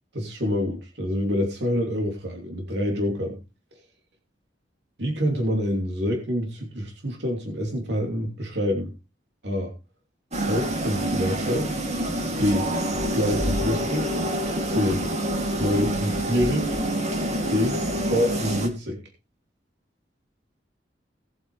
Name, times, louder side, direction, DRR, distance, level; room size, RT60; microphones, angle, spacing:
voice 1, 0.1-3.4 5.0-8.9 9.4-9.7 10.5-11.7 12.4-12.7 13.0-14.1 14.7-15.1 15.6-16.7 17.5-19.0, equal, 70° right, 2.9 m, -26 dB
sound 1, 10.3-18.7, right 1 dB, 40° right, 2.6 m, -27 dB
19.0 x 8.0 x 3.3 m
head